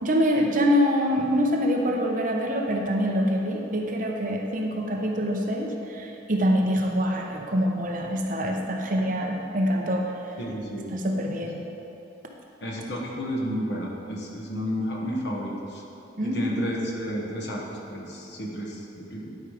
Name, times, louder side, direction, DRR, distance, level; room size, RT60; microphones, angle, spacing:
voice 1, 0.0-10.3 10.9-11.6 16.2-16.7, equal, 45° right, 1 dB, 0.8 m, -25 dB
voice 2, 10.4-10.9 11.4-11.5 12.6-15.8 16.2-17.6 17.9-19.4, equal, 60° left, -2 dB, 1.3 m, -32 dB
11.5 x 4.9 x 4.9 m, 2.9 s
head